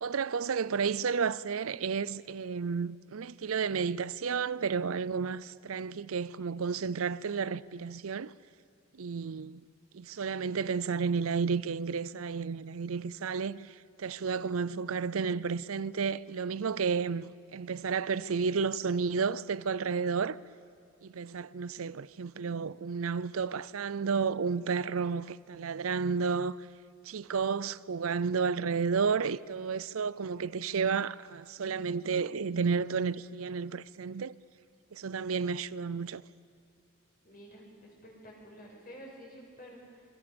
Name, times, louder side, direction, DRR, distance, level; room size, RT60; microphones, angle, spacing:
voice 1, 0.0-8.3 9.0-9.6 9.9-20.4 21.0-26.6 27.0-34.3 34.9-36.2, right 5 dB, 90° right, 0.6 m, -32 dB
voice 2, 37.2-40.0, equal, 45° left, 6.3 m, -50 dB
27.0 x 22.0 x 7.0 m
head